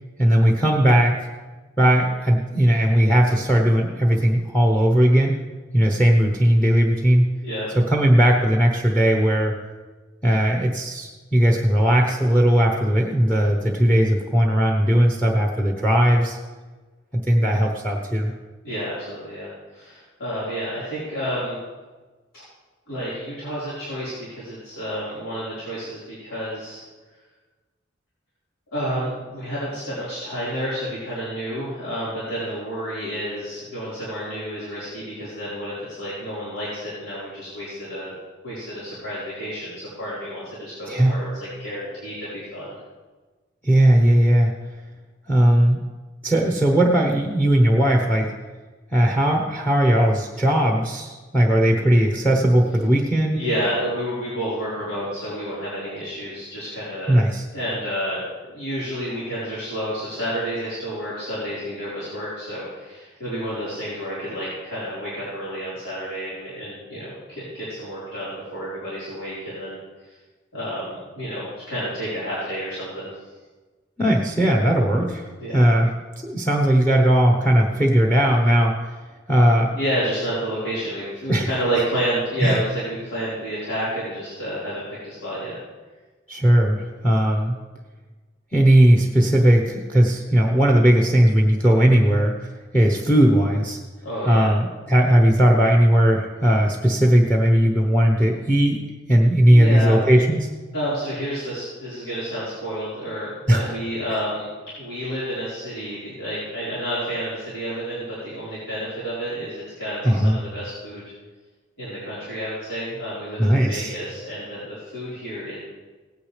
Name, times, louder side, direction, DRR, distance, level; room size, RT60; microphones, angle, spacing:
voice 1, 0.2-1.2 1.8-5.4 5.7-7.3 7.7-9.5 10.2-16.4 17.1-18.3 40.9-41.2 43.6-44.5 45.3-45.8 46.2-48.3 48.9-53.4 57.1-57.4 74.0-75.2 75.5-75.9 76.2-78.7 79.3-79.7 81.3-81.5 82.4-82.6 86.3-87.6 88.5-93.8 94.3-98.8 99.1-100.5 103.5-103.7 110.0-110.4 113.4-113.9, right 1 dB, 5° left, 1 dB, 0.9 m, -18 dB
voice 2, 18.6-21.6 22.3-22.4 22.9-26.8 28.7-38.1 38.4-42.7 53.3-57.2 57.5-69.8 70.5-73.1 75.4-75.6 79.8-85.6 94.0-94.5 99.5-100.0 100.7-104.5 104.8-111.0 111.8-115.6, equal, 85° left, -11 dB, 4.5 m, -30 dB
17.5 x 9.5 x 3.4 m, 1.3 s
head